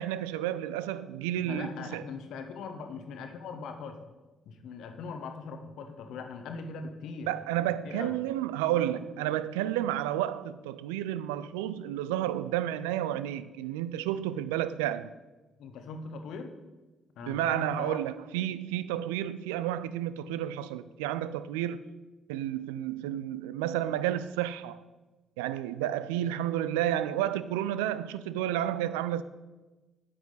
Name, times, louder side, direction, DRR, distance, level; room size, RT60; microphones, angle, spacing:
voice 1, 0.0-2.0 7.3-15.1 17.3-21.8 22.3-24.8 25.4-29.2, right 12 dB, 75° right, 0.3 m, -31 dB
voice 2, 1.4-4.1 4.4-7.3 7.8-8.2 15.6-16.6 17.2-18.0, left 4 dB, 65° left, 1.0 m, -40 dB
9.1 x 8.6 x 4.0 m
figure-of-eight pair, 45°, 0 cm